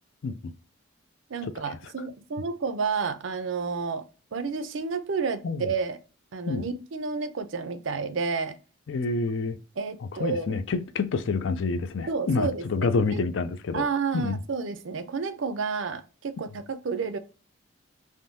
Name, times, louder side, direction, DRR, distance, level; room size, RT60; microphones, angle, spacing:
voice 1, 1.3-4.1 4.3-6.0 6.3-8.6 9.8-10.6 12.1-13.2 13.7-17.2, right 5 dB, 70° right, 0.5 m, -30 dB
voice 2, 8.9-9.6 10.1-13.8 14.1-14.4, left 4 dB, 65° left, 0.4 m, -27 dB
3.6 x 2.6 x 2.6 m
head